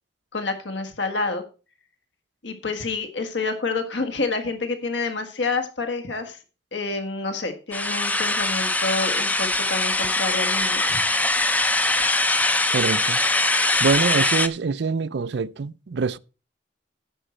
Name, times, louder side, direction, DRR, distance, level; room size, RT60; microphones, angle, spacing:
voice 1, 0.3-1.4 2.4-6.4 6.7-10.8, left 3 dB, 70° left, 1.5 m, -28 dB
sound 1, 7.7-14.5, left 2 dB, 10° left, 0.5 m, -22 dB
voice 2, 12.7-13.2 13.8-16.2, right 4 dB, 60° right, 0.4 m, -24 dB
10.0 x 7.7 x 4.3 m
head